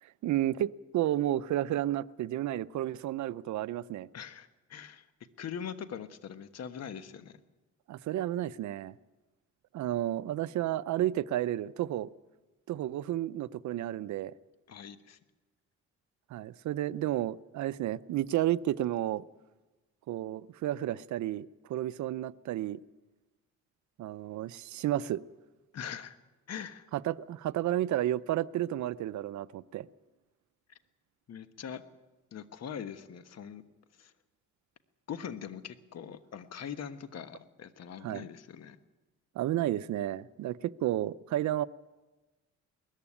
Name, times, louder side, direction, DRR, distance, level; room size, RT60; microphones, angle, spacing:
voice 1, 0.0-4.1 7.9-9.0 9.7-12.1 12.7-14.3 16.3-19.2 20.1-22.8 24.0-25.2 26.9-29.9 38.0-38.3 39.3-41.7, right 13 dB, 70° right, 16 dB, 0.6 m, -32 dB
voice 2, 4.1-5.0 5.4-7.4 14.7-15.2 25.7-26.2 26.5-26.8 31.3-31.8 32.3-33.6 34.0-34.1 35.1-38.8, left 8 dB, 55° left, 11 dB, 1.3 m, -42 dB
19.5 x 14.5 x 9.9 m, 1.2 s
cardioid pair, 90°, 30 cm